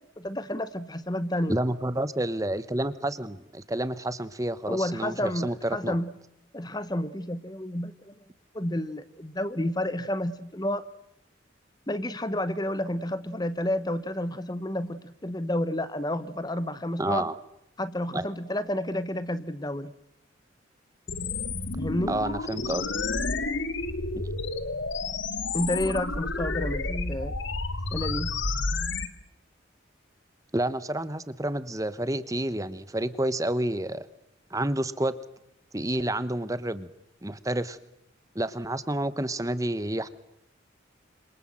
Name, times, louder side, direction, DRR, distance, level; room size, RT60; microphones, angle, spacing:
voice 1, 0.0-1.6 4.7-6.1 6.5-8.1 8.5-10.8 11.9-17.3 17.8-19.9 21.8-22.1 25.5-27.4 27.9-28.4, left 1 dB, 20° left, 14 dB, 1.0 m, -30 dB
voice 2, 1.5-5.9 17.0-17.3 18.1-18.3 22.1-22.9 24.1-24.2 30.5-34.0 34.5-35.1 35.7-36.9 37.2-37.8 38.3-40.1, right 1 dB, 15° right, 14 dB, 1.1 m, -29 dB
sound 1, 21.1-29.1, left 3 dB, 70° left, 2.0 m, -30 dB
27.5 x 26.5 x 7.7 m, 0.83 s
head